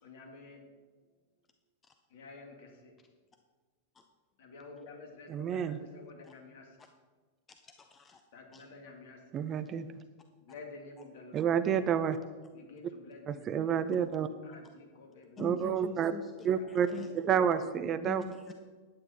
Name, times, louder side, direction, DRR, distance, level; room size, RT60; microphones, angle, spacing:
voice 1, 0.0-0.6 2.1-2.9 4.4-5.5 5.9-6.7 8.3-9.2 10.4-11.3 12.5-13.5 14.4-15.4 16.6-16.9, left 3 dB, 55° left, 2 dB, 2.7 m, -50 dB
voice 2, 5.3-5.8 9.3-9.9 11.3-12.2 13.3-14.3 15.4-16.1 16.4-16.9 17.1-18.2, right 8 dB, 30° right, 12 dB, 0.7 m, -29 dB
voice 3, 7.6-8.2 8.5-8.6 15.4-16.3 16.7-17.1 18.0-18.5, left 6 dB, 20° left, 6 dB, 0.8 m, -44 dB
11.5 x 9.4 x 6.2 m, 1.4 s
figure-of-eight pair, 90°, 0 cm